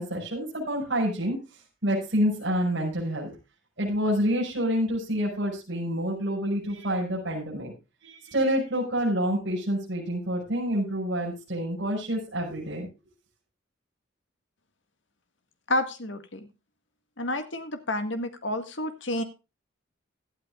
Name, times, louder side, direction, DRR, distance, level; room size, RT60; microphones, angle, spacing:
voice 1, 0.0-1.4 1.8-3.3 3.8-7.7 8.0-12.9, equal, 60° right, -4 dB, 6.0 m, -27 dB
voice 2, 15.7-16.5 17.2-19.2, left 1 dB, 70° left, 8 dB, 1.8 m, -30 dB
17.5 x 12.0 x 2.4 m, 0.28 s
head